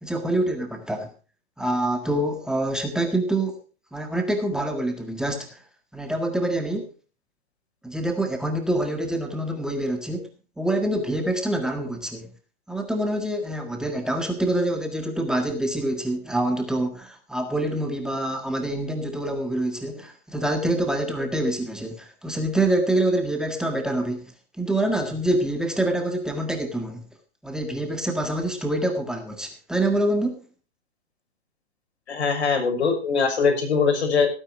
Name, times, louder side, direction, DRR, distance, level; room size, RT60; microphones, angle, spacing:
voice 1, 0.0-1.1 1.6-3.5 3.9-5.6 5.9-6.9 7.8-10.2 10.6-12.3 12.7-27.0 27.4-30.4, right 1 dB, ahead, 4 dB, 1.7 m, -26 dB
voice 2, 32.1-34.3, left 5 dB, 85° left, 5 dB, 6.3 m, -22 dB
17.0 x 9.1 x 4.9 m, 0.36 s
hypercardioid pair, 140°, 32 cm